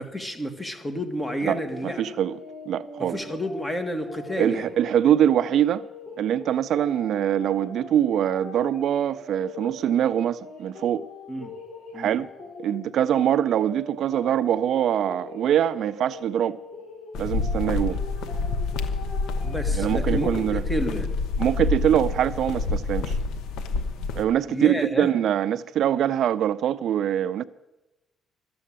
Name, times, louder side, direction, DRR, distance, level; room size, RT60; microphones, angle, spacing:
voice 1, 0.0-2.0 3.0-4.7 11.3-11.5 11.9-12.1 19.4-21.2 24.5-25.1, equal, 15° left, 1.8 m, -30 dB
sound 1, 1.2-20.3, left 2 dB, 70° left, 4.5 m, -42 dB
voice 2, 1.8-2.4 2.7-3.2 4.4-5.8 6.2-11.0 11.9-12.3 12.6-16.6 17.2-18.0 19.7-20.6 21.4-23.2 24.1-27.4, right 10 dB, 70° right, 0.4 m, -23 dB
sound 2, 17.1-24.3, left 3 dB, 85° left, 0.9 m, -27 dB
13.0 x 7.6 x 8.6 m
cardioid pair, 90°, 0 cm